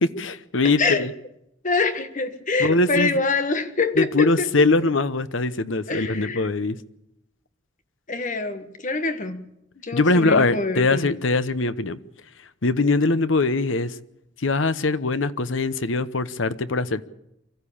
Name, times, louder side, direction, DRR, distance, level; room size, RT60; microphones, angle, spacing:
voice 1, 0.0-1.1 2.6-3.1 4.0-6.8 9.9-12.0 12.6-13.9 14.4-17.0, left 3 dB, 75° left, 1.0 m, -22 dB
voice 2, 0.6-1.0 1.6-4.5 5.9-6.5 8.1-9.5 9.8-11.1, left 3 dB, 40° left, 1.6 m, -25 dB
24.5 x 14.5 x 8.6 m
head